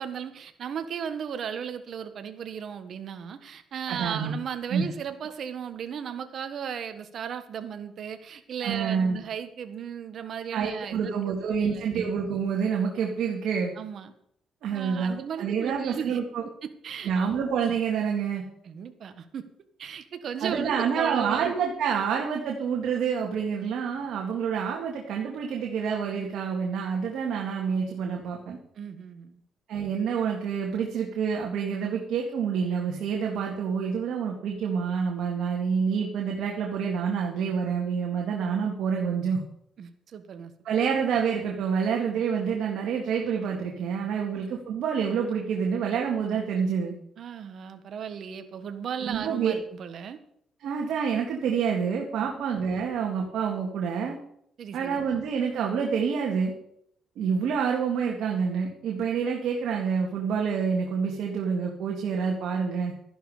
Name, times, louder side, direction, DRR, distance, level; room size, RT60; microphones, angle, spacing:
voice 1, 0.0-11.9 13.8-14.1 14.7-16.2 16.6-17.1 18.6-19.5 19.8-21.5 28.7-29.4 39.8-40.5 47.2-50.2 52.2-52.3 54.6-55.0, right 7 dB, 60° right, 9 dB, 1.5 m, -36 dB
voice 2, 3.9-4.3 4.7-4.8 8.6-9.2 10.5-13.7 14.6-16.4 17.0-18.4 20.4-28.6 29.7-39.4 40.6-46.9 49.0-49.6 50.6-54.2 54.7-56.5 57.2-62.9, right 6 dB, 80° right, 0 dB, 2.1 m, -27 dB
12.5 x 11.0 x 5.0 m, 0.70 s
cardioid pair, 90°, 0 cm